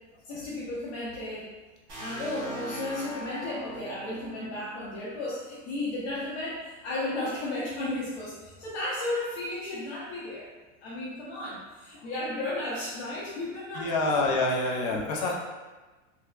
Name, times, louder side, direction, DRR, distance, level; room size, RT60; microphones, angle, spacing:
voice 1, 0.2-1.5 2.0-10.5 10.8-14.2 14.9-15.3, left 2 dB, 55° left, -7 dB, 0.8 m, -34 dB
sound 1, 1.9-5.7, right 1 dB, 35° right, 1.2 m, -40 dB
voice 2, 13.7-15.3, left 2 dB, 35° left, -1 dB, 0.4 m, -26 dB
3.3 x 2.8 x 2.3 m, 1.2 s
supercardioid pair, 170°, 38 cm